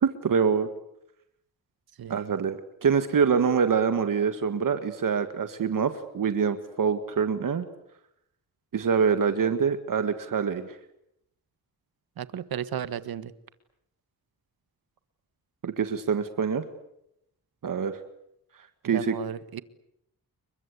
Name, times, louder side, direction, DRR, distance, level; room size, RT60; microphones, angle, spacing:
voice 1, 0.0-0.7 2.1-7.7 8.7-10.8 15.6-16.6 17.6-18.0 18.8-19.1, right 6 dB, 60° right, 9 dB, 1.8 m, -25 dB
voice 2, 2.0-2.4 12.2-13.3 18.8-19.6, right 9 dB, 80° right, 14 dB, 1.5 m, -34 dB
29.5 x 23.0 x 8.4 m, 0.79 s
cardioid pair, 95°, 36 cm